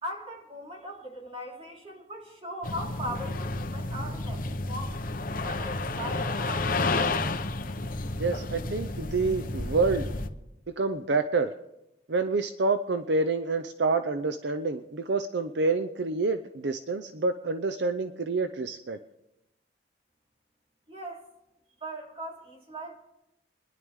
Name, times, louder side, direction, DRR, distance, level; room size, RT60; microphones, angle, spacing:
voice 1, 0.0-5.0 5.4-7.4 20.9-21.2 21.8-22.9, equal, 35° right, -1 dB, 2.8 m, -39 dB
sound 1, 2.6-10.3, left 2 dB, 50° left, 0.9 m, -31 dB
voice 2, 8.2-10.1 10.8-11.5 12.1-19.0, right 3 dB, 70° right, 9 dB, 0.6 m, -28 dB
27.5 x 11.0 x 3.6 m, 0.90 s
head